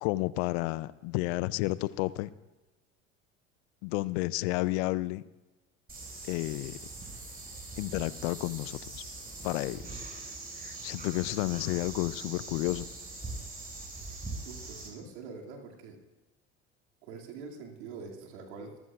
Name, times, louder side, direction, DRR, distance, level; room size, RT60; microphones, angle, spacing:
voice 1, 0.0-2.3 3.8-5.2 6.3-6.8 7.8-9.0 9.4-10.0 10.6-12.8, left 19 dB, 75° left, 19 dB, 0.6 m, -31 dB
sound 1, 5.9-14.9, right 3 dB, 25° right, 5.5 m, -42 dB
voice 2, 14.4-16.0 17.0-18.8, right 5 dB, 80° right, 1 dB, 2.5 m, -44 dB
25.0 x 14.5 x 2.4 m, 1.1 s
hypercardioid pair, 70°, 33 cm